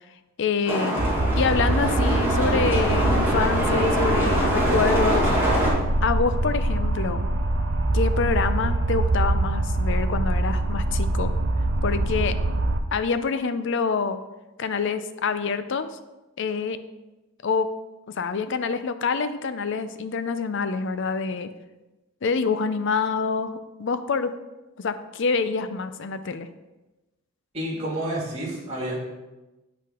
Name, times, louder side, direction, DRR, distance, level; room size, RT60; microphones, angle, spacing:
voice 1, 0.4-1.0 1.4-5.3 6.0-7.3 7.9-11.3 11.8-12.4 12.9-14.2 14.6-15.9 16.4-16.8 17.4-17.7 18.2-21.5 22.2-24.3 24.8-26.5, left 5 dB, 55° left, 11 dB, 0.5 m, -26 dB
sound 1, 0.7-5.7, equal, 10° right, 1.6 m, -24 dB
sound 2, 1.0-12.8, right 2 dB, 60° right, 0.5 m, -24 dB
voice 2, 27.5-29.0, right 1 dB, 30° right, -7 dB, 2.2 m, -29 dB
8.0 x 5.6 x 3.7 m, 1.1 s
head